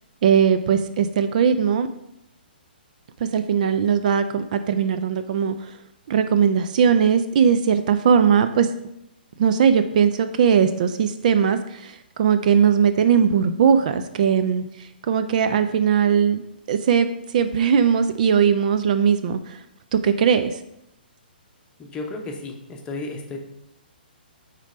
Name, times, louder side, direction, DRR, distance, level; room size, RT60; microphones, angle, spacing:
voice 1, 0.2-1.9 3.3-5.7 6.1-8.7 9.4-14.6 15.1-16.4 16.7-19.6 19.9-20.6, right 7 dB, 50° right, 10 dB, 0.4 m, -19 dB
voice 2, 21.8-23.4, left 2 dB, 15° left, 2 dB, 0.9 m, -33 dB
5.1 x 4.1 x 5.1 m, 0.83 s
figure-of-eight pair, 130°, 5 cm